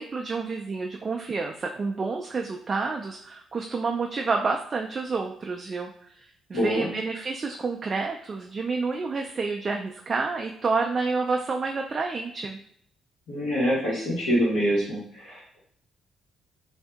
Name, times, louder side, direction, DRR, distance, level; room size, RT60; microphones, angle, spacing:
voice 1, 0.0-6.2 6.5-12.6, right 4 dB, 40° right, 2 dB, 0.3 m, -29 dB
voice 2, 6.5-6.9 13.3-15.6, equal, 85° left, -6 dB, 1.4 m, -25 dB
2.7 x 2.6 x 3.4 m, 0.67 s
cardioid pair, 90°, 0 cm